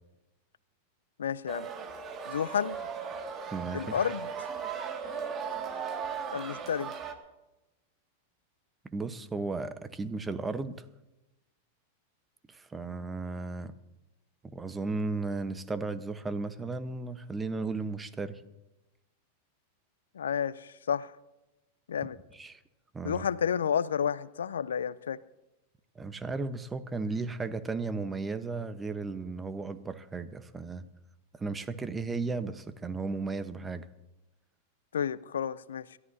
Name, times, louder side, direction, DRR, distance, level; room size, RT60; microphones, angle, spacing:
voice 1, 1.2-1.7 2.3-2.8 3.7-4.3 6.3-6.9 20.1-21.1 21.9-22.2 23.0-25.2 34.9-36.0, left 8 dB, 80° left, 19 dB, 0.4 m, -31 dB
sound 1, 1.5-7.1, right 6 dB, 30° right, 2.0 m, -37 dB
voice 2, 3.5-4.0 8.8-10.8 12.5-13.7 14.5-18.4 22.3-22.6 22.9-23.3 25.9-30.9 31.3-33.9, right 3 dB, 15° right, 12 dB, 1.0 m, -35 dB
28.0 x 13.0 x 2.7 m, 0.98 s
hypercardioid pair, 95°, 0 cm